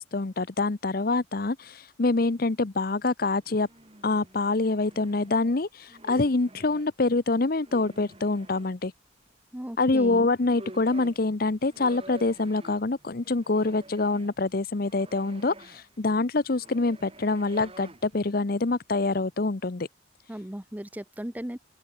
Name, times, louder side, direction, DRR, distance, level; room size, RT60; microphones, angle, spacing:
voice 1, 0.0-3.7 4.0-8.9 9.8-19.9, left 3 dB, 45° left, 0.7 m, -26 dB
sound 1, 3.3-6.9 7.5-8.7 10.0-10.1 10.4-18.3, right 1 dB, 30° right, 2.6 m, -49 dB
voice 2, 9.5-10.3 20.3-21.6, equal, 10° right, 0.6 m, -36 dB
open air
head